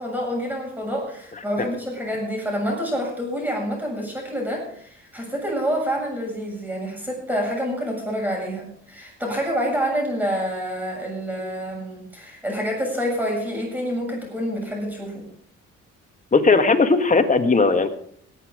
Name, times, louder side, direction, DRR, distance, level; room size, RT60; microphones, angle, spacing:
voice 1, 0.0-15.3, equal, 5° right, -1 dB, 7.4 m, -27 dB
voice 2, 16.3-17.9, left 4 dB, 25° left, 7 dB, 1.7 m, -17 dB
19.5 x 8.6 x 5.0 m, 0.62 s
cardioid pair, 90°, 30 cm